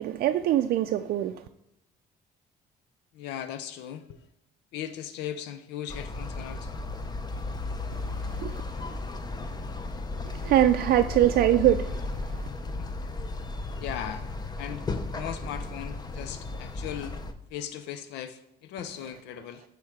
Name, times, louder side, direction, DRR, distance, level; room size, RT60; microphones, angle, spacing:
voice 1, 0.0-1.3 8.4-8.6 10.2-12.2, right 12 dB, 65° right, 0.4 m, -23 dB
voice 2, 3.1-4.3 4.7-6.7 12.8-12.9 13.8-14.2 14.6-14.9 15.1-17.2 17.5-19.6, left 10 dB, 90° left, 0.6 m, -38 dB
sound 1, 5.9-17.3, left 3 dB, 25° left, 0.7 m, -35 dB
9.7 x 3.7 x 5.9 m
cardioid pair, 110°, 17 cm